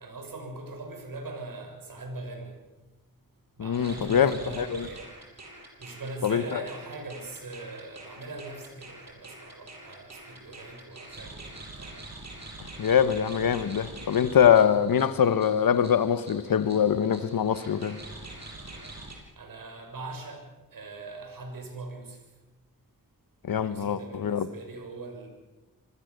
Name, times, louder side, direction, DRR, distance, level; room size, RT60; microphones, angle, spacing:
voice 1, 0.0-2.6 3.6-5.1 5.8-12.0 19.4-22.3 23.5-25.3, right 2 dB, 80° right, 6.4 m, -41 dB
voice 2, 3.6-4.9 6.2-6.6 12.6-18.0 23.4-24.5, left 8 dB, 80° left, 1.2 m, -23 dB
sound 1, 3.7-19.2, right 2 dB, 50° right, 7.3 m, -45 dB
26.5 x 21.0 x 6.8 m
cardioid pair, 55°, 34 cm